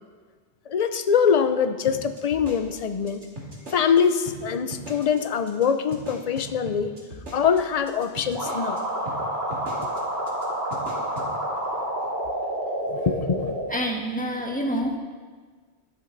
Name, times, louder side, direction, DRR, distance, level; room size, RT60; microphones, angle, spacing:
voice 1, 0.7-3.3 3.7-6.9 7.3-8.8 12.9-13.5, left 7 dB, 40° left, 9 dB, 0.6 m, -23 dB
sound 1, 1.9-4.0 4.3-4.4 4.7-5.2 5.5-5.6 5.9-8.8 9.1-9.2 9.5-10.0 10.3-10.4 10.7-11.3, right 1 dB, 85° right, 2.6 m, -39 dB
sound 2, 8.3-13.6, right 1 dB, 60° right, 3.4 m, -29 dB
voice 2, 13.7-15.0, equal, 5° left, 0 dB, 1.5 m, -27 dB
21.0 x 7.4 x 3.9 m, 1.5 s
omnidirectional pair, 1.1 m